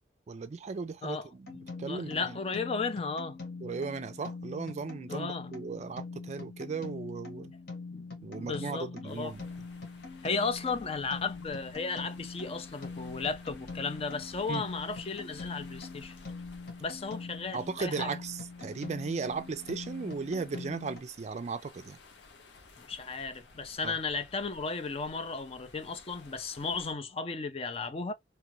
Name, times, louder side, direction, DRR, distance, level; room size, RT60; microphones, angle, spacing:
voice 1, 0.3-2.4 3.6-7.5 8.2-9.4 14.5-14.6 17.5-22.0 23.8-24.0, right 4 dB, 40° right, 0.4 m, -36 dB
sound 1, 1.4-21.0, left 4 dB, 65° left, 1.4 m, -43 dB
voice 2, 1.9-3.4 5.1-5.6 7.9-8.0 8.3-9.3 10.2-16.2 16.8-18.2 22.8-28.1, left 4 dB, 35° left, 0.5 m, -35 dB
sound 2, 9.1-26.9, left 3 dB, 85° left, 0.9 m, -55 dB
2.9 x 2.4 x 3.0 m
head